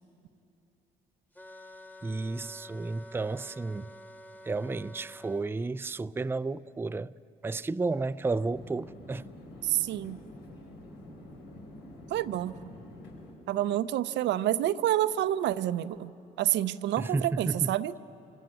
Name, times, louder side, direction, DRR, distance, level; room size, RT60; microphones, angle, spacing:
sound 1, 1.3-5.5, left 1 dB, 10° left, 1.4 m, -49 dB
voice 1, 2.0-3.9 4.4-7.1 7.4-9.2 17.0-17.7, right 3 dB, 10° right, 0.4 m, -32 dB
sound 2, 8.3-13.3, left 1 dB, 85° left, 3.8 m, -47 dB
voice 2, 9.6-10.2 12.1-12.5 13.5-16.1 16.4-18.0, right 13 dB, 75° right, 0.6 m, -28 dB
26.5 x 17.0 x 7.7 m
supercardioid pair, 60°, 18 cm